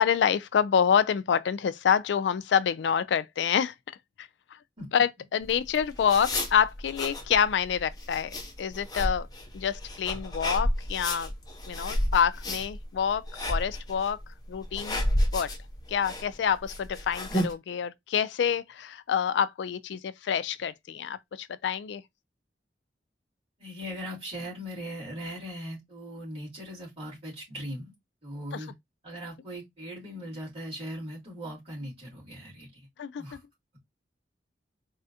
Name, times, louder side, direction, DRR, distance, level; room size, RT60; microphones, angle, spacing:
voice 1, 0.0-3.7 4.2-4.3 4.9-9.3 9.5-11.3 11.7-13.2 13.5-14.2 14.5-15.1 15.3-15.5 15.9-22.0 28.5-28.7 33.0-33.2, left 7 dB, 80° left, 0.3 m, -27 dB
sound 1, 5.4-17.5, left 1 dB, 25° left, 0.8 m, -32 dB
voice 2, 23.6-27.9 28.2-28.7 29.0-32.7 33.2-33.4, equal, 35° right, 2.5 m, -39 dB
4.1 x 2.4 x 2.7 m
head